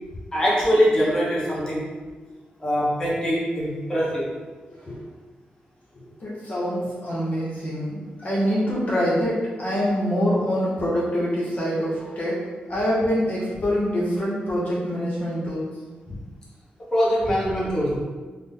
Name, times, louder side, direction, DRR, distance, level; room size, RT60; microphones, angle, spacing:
voice 1, 0.3-1.9 2.6-4.3 16.1-16.2 16.9-18.0, equal, 20° left, -7 dB, 1.0 m, -22 dB
voice 2, 6.0-12.4 12.7-15.7, equal, 45° left, -6 dB, 0.9 m, -25 dB
3.4 x 2.1 x 3.6 m, 1.4 s
cardioid pair, 100°, 3 cm